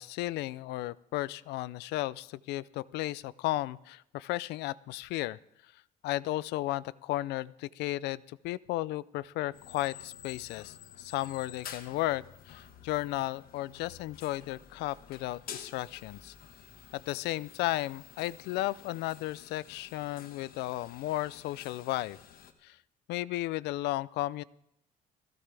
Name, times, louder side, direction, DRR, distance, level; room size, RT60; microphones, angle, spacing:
voice 1, 0.0-5.4 6.0-16.3 16.9-22.2 22.6-22.8 23.1-24.4, left 17 dB, 85° left, 20 dB, 0.4 m, -34 dB
sound 1, 9.5-22.5, left 9 dB, 60° left, 1.4 m, -50 dB
17.0 x 14.5 x 3.4 m, 0.79 s
cardioid pair, 110°, 17 cm